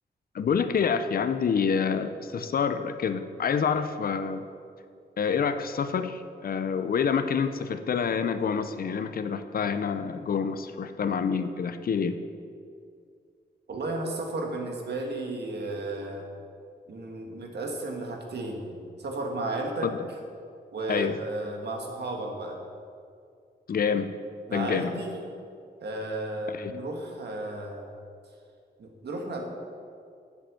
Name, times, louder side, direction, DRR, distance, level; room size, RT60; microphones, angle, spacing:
voice 1, 0.3-4.5 5.2-12.2 19.8-20.0 20.9-21.2 23.7-24.1 24.5-25.1 26.5-26.7, left 6 dB, 55° left, 10 dB, 0.6 m, -27 dB
voice 2, 13.7-16.3 16.9-19.9 20.7-22.6 24.5-25.2 25.8-27.8 28.8-29.4, right 2 dB, 65° right, 2 dB, 1.6 m, -33 dB
7.8 x 7.4 x 7.6 m, 2.3 s
wide cardioid pair, 155°, 18 cm